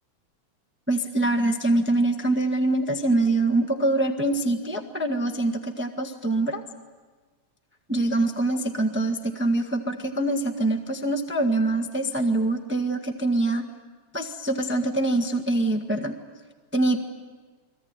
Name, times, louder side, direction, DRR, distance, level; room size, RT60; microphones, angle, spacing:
voice 1, 0.9-6.6 7.9-13.7 14.1-16.2 16.7-17.0, right 2 dB, 10° right, 5 dB, 0.5 m, -24 dB
29.5 x 22.0 x 9.0 m, 1.4 s
omnidirectional pair, 3.4 m